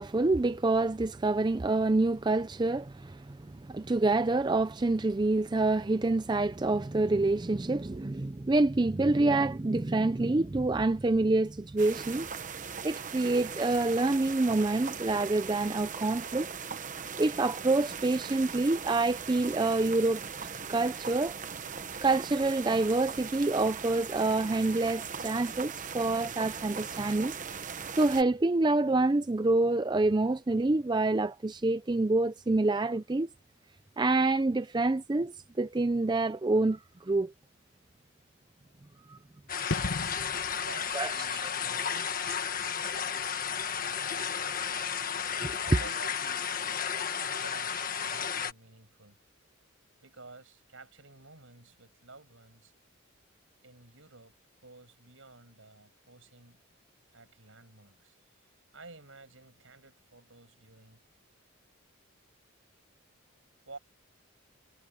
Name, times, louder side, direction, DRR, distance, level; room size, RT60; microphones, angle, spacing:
voice 1, 0.0-12.3 12.8-16.5 17.2-20.2 20.7-21.4 22.0-27.3 28.0-33.3 34.0-37.3 39.1-39.2 40.9-41.5 45.4-45.6, right 2 dB, 20° right, 0.4 m, -27 dB
sound 1, 11.8-28.2, right 6 dB, 35° right, 1.0 m, -39 dB
sound 2, 39.5-48.5, left 7 dB, 40° left, 1.6 m, -33 dB
sound 3, 39.7-46.2 46.4-46.6, left 2 dB, 65° left, 1.7 m, -41 dB
voice 2, 40.5-42.8 45.6-46.9 47.2-49.2 50.0-52.7 53.6-56.6 57.1-58.2 58.7-61.0 63.7-63.8, right 3 dB, 70° right, 5.8 m, -52 dB
head